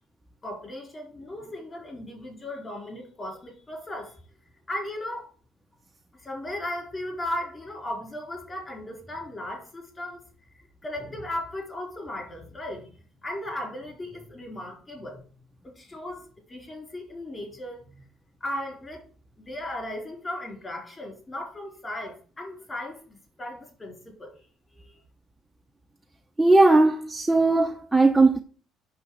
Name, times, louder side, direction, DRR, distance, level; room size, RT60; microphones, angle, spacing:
voice 1, 0.4-4.1 4.7-5.3 6.2-10.2 10.8-12.9 13.2-15.2 15.6-16.2 16.5-18.1 18.4-19.0 19.4-24.3 24.8-25.0, left 1 dB, 20° left, 4.3 m, -36 dB
voice 2, 26.4-28.4, right 2 dB, 5° right, 0.7 m, -18 dB
8.6 x 6.7 x 4.8 m
cardioid pair, 135°, 0 cm